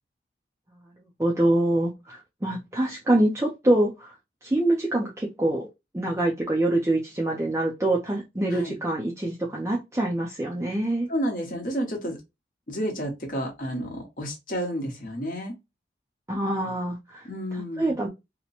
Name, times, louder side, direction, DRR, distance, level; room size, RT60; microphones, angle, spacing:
voice 1, 1.2-4.1 4.4-5.7 5.9-11.1 16.3-18.1, right 1 dB, 15° right, 0.5 m, -25 dB
voice 2, 11.1-12.2 12.7-15.5 17.2-17.9, equal, 45° left, 1.0 m, -31 dB
2.9 x 2.1 x 4.1 m
head